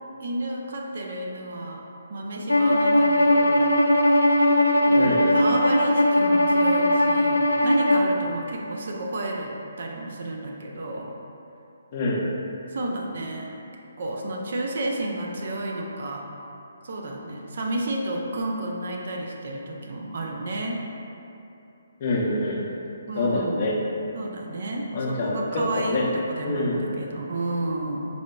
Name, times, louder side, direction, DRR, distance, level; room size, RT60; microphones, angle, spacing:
voice 1, 0.2-1.8 2.1-3.6 4.8-11.1 12.7-13.6 14.0-16.3 16.8-20.8 23.1-23.7 24.1-28.1, right 1 dB, 60° right, 0 dB, 0.4 m, -31 dB
Bowed string instrument, 2.5-8.1, left 1 dB, 90° left, 0.3 m, -19 dB
voice 2, 11.9-12.3 22.0-22.7 23.2-23.7 24.9-26.2 26.4-26.9, left 2 dB, 40° left, -3 dB, 0.5 m, -26 dB
4.1 x 2.8 x 2.2 m, 2.8 s
figure-of-eight pair, 140°, 0 cm